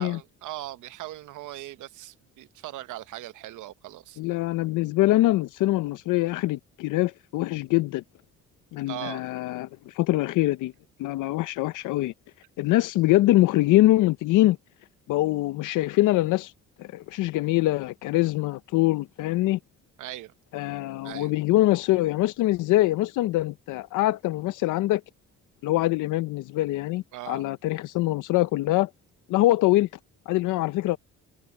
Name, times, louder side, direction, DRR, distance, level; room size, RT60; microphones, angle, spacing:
voice 1, 0.0-4.2 8.9-9.2 20.0-20.3 21.0-21.3 27.1-27.5, right 15 dB, 85° right, 1.0 m, -39 dB
voice 2, 4.2-8.0 8.7-10.7 11.0-12.1 12.6-14.6 15.1-16.5 16.8-19.6 20.5-25.0 25.6-28.9 29.3-29.9 30.3-31.0, left 17 dB, 85° left, 0.6 m, -24 dB
cardioid pair, 90°, 30 cm